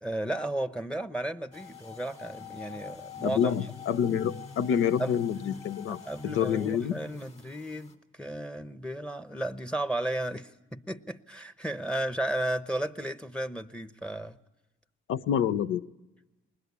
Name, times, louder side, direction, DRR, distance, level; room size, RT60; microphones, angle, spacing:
voice 1, 0.0-3.6 5.0-5.2 5.9-14.4, right 1 dB, 5° left, 0.9 m, -34 dB
sound 1, 1.5-7.9, left 6 dB, 35° left, 3.5 m, -46 dB
voice 2, 3.2-7.0 15.1-15.9, left 8 dB, 85° left, 0.8 m, -27 dB
21.0 x 20.5 x 9.7 m
cardioid pair, 90°, 20 cm